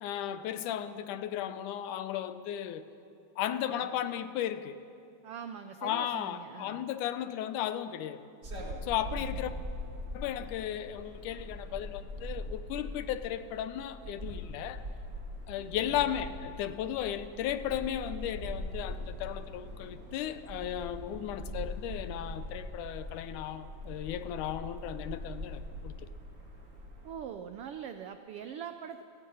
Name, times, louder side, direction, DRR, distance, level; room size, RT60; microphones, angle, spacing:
voice 1, 0.0-2.8 3.4-4.8 5.8-8.2 8.8-9.5 10.1-14.8 15.5-26.1, left 11 dB, 85° left, 2.3 m, -35 dB
voice 2, 5.2-6.9 9.2-9.7 15.8-16.2 27.0-29.0, right 8 dB, 85° right, 1.2 m, -43 dB
sound 1, 8.4-27.1, equal, 25° right, 2.3 m, -42 dB
29.5 x 17.0 x 5.5 m
omnidirectional pair, 3.5 m